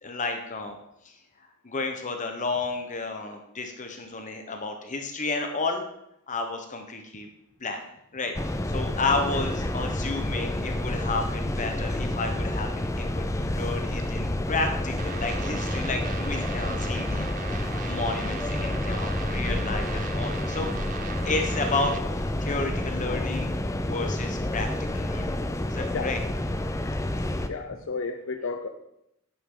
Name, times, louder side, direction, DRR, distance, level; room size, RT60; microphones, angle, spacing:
voice 1, 0.0-0.8 1.0-1.1 1.6-5.8 6.3-7.3 7.6-7.8 8.1-20.7 21.2-23.5 23.8-25.4 25.7-26.2, left 3 dB, 35° left, 4 dB, 1.0 m, -32 dB
sound 1, 8.4-27.5, left 1 dB, 15° left, 0.6 m, -29 dB
sound 2, 15.0-22.0, right 6 dB, 40° right, 0.7 m, -39 dB
voice 2, 27.5-28.7, left 4 dB, 65° left, 6 dB, 0.7 m, -33 dB
11.0 x 10.0 x 3.9 m, 0.81 s
head